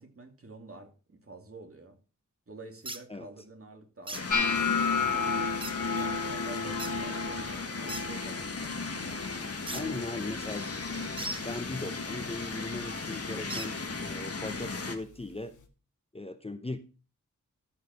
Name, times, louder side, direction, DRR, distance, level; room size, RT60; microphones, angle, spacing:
voice 1, 0.0-2.0 2.5-8.8 9.7-10.0, right 2 dB, 45° right, 3 dB, 2.5 m, -49 dB
sound 1, 2.8-3.0 4.1-4.2 5.6-5.8 6.8-6.9 7.9-8.0 9.7-9.8 11.2-11.4 13.5-13.7, right 2 dB, 15° right, 0.8 m, -37 dB
sound 2, 4.1-15.0, left 4 dB, 50° left, 1.4 m, -37 dB
sound 3, 4.3-10.4 10.7-11.2 11.5-12.1 12.7-12.9 14.7-14.8, left 5 dB, 70° left, 1.4 m, -33 dB
voice 2, 9.7-10.7 11.4-15.5 16.1-16.8, left 2 dB, 20° left, 9 dB, 0.8 m, -38 dB
14.0 x 4.7 x 5.2 m, 0.35 s
wide cardioid pair, 70°, 31 cm